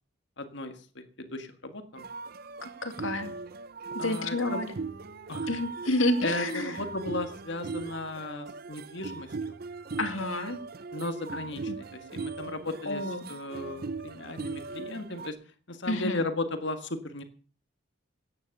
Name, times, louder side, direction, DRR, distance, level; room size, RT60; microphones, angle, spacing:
voice 1, 0.4-2.1 4.0-4.6 5.3-5.5 6.2-9.5 10.9-13.0 13.3-15.4 15.7-17.2, left 2 dB, 60° left, 8 dB, 1.7 m, -36 dB
sound 1, 2.0-15.3, right 4 dB, 50° right, 0.6 m, -39 dB
voice 2, 2.6-3.3 3.9-4.7 5.5-6.8 10.0-10.6 11.7-11.8 12.9-13.3 15.9-16.2, left 1 dB, 75° left, 8 dB, 2.3 m, -29 dB
14.5 x 9.9 x 6.6 m, 0.42 s
head